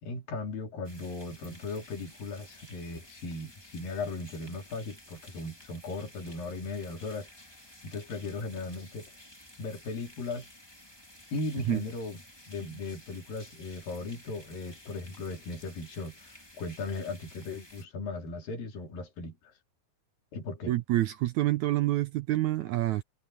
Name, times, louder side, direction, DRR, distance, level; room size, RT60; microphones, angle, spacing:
voice 1, 0.0-7.3 7.8-9.1 9.6-10.5 11.3-12.2 12.5-19.4 20.3-20.7, left 3 dB, 70° left, 4.9 m, -37 dB
sound 1, 0.8-17.8, left 1 dB, 5° left, 3.2 m, -53 dB
voice 2, 20.7-23.0, right 15 dB, 80° right, 1.7 m, -27 dB
omnidirectional pair, 4.2 m